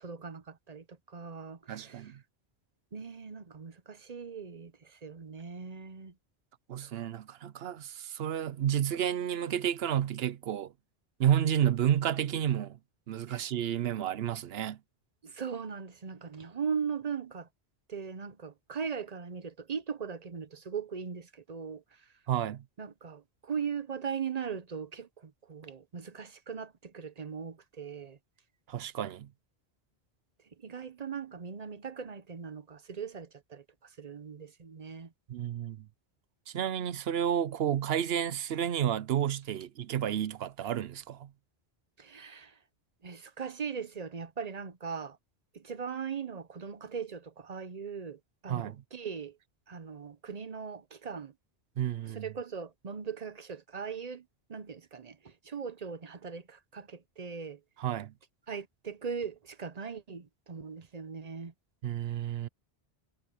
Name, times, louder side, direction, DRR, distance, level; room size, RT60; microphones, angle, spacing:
voice 1, 0.0-2.1 2.9-6.1 6.8-6.9 13.3-13.4 15.2-17.5 17.9-21.8 22.8-28.2 30.6-33.6 34.0-35.1 42.0-42.5 43.0-45.2 45.5-49.4 49.7-51.3 52.0-54.2 54.5-57.6 58.5-61.5, right 6 dB, 40° right, 0.8 m, -39 dB
voice 2, 1.7-2.2 6.7-10.7 11.2-12.8 13.1-14.8 22.3-22.6 28.7-29.3 35.3-35.9 36.5-41.3 48.5-48.8 51.8-52.3 57.8-58.1 61.8-62.5, right 10 dB, 70° right, 0.9 m, -31 dB
omnidirectional pair, 1.1 m